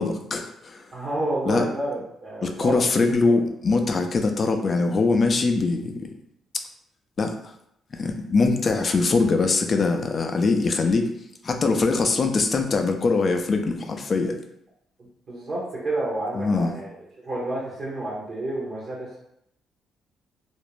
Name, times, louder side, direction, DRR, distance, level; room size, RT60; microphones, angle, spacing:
voice 1, 0.0-0.8 1.4-1.7 2.4-6.1 7.2-7.3 7.9-11.1 11.4-14.4 16.3-16.7, left 3 dB, 40° left, 5 dB, 0.3 m, -22 dB
voice 2, 0.9-2.8 3.2-3.4 15.3-16.9 17.3-19.2, right 1 dB, 50° right, -5 dB, 0.8 m, -29 dB
2.4 x 2.0 x 3.0 m, 0.75 s
cardioid pair, 90°, 0 cm